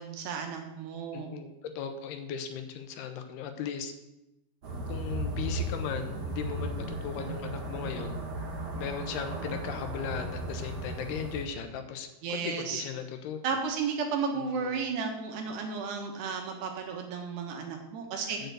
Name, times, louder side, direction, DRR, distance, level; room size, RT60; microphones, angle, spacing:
voice 1, 0.0-1.3 12.2-12.8 13.4-18.4, right 5 dB, 80° right, 2 dB, 3.4 m, -33 dB
voice 2, 1.1-3.9 4.9-8.2 8.8-13.4 14.4-14.8 18.4-18.5, left 7 dB, 80° left, 6 dB, 2.8 m, -37 dB
sound 1, 4.6-11.4, right 1 dB, 60° right, 1.0 m, -36 dB
7.9 x 6.8 x 7.9 m, 0.94 s
omnidirectional pair, 4.8 m